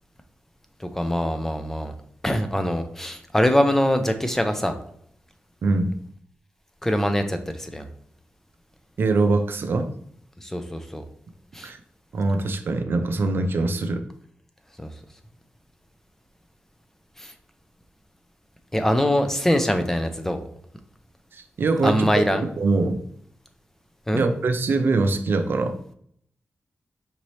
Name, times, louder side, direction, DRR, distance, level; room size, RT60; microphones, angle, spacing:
voice 1, 0.8-1.9 2.2-4.8 6.8-7.9 10.4-11.0 11.5-11.7 14.8-14.9 17.2-17.3 18.7-20.4 21.8-22.5 24.1-24.2, equal, 10° left, 7 dB, 0.5 m, -23 dB
voice 2, 9.0-9.9 11.6-11.8 12.1-14.0 21.3-22.1 22.6-23.0 24.1-25.8, right 3 dB, 65° right, 7 dB, 0.5 m, -23 dB
5.1 x 2.8 x 3.1 m, 0.65 s
wide cardioid pair, 85°, 4 cm